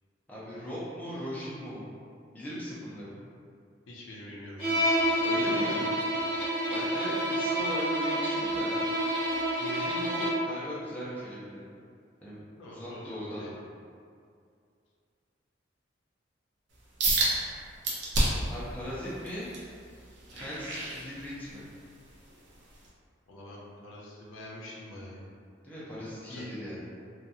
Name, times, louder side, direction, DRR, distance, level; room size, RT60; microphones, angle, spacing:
voice 1, 0.3-1.9 2.3-3.1 5.2-5.9 6.7-8.9 9.6-11.6 12.2-12.4 12.7-13.5 18.5-19.5 20.3-21.6 25.6-27.0, equal, 10° left, -10 dB, 0.6 m, -39 dB
voice 2, 3.9-5.0 12.6-13.6 23.3-25.3 26.3-26.4, left 1 dB, 90° left, -4 dB, 0.5 m, -45 dB
Bowed string instrument, 4.6-10.5, equal, 30° left, 1.2 m, -28 dB
sound 1, 17.0-17.3 17.8-18.5 19.0-21.6 22.1-22.3 22.9-23.0, right 2 dB, 70° right, 0.6 m, -29 dB
2.8 x 2.3 x 2.6 m, 2.3 s
head